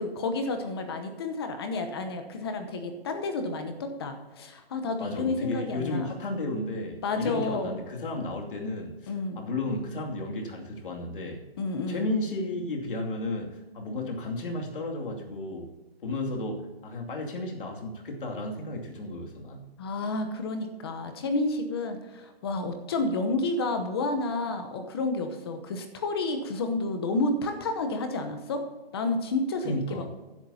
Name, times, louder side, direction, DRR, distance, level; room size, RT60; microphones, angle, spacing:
voice 1, 0.0-6.1 7.0-7.8 9.1-9.4 11.6-12.1 19.8-28.6 28.9-30.0, left 3 dB, 25° left, 6 dB, 0.9 m, -30 dB
voice 2, 5.0-11.4 11.9-15.7 16.0-19.7 29.6-30.1, left 2 dB, 60° left, 1 dB, 2.6 m, -33 dB
15.5 x 10.5 x 2.8 m, 1.2 s
hypercardioid pair, 165°, 30 cm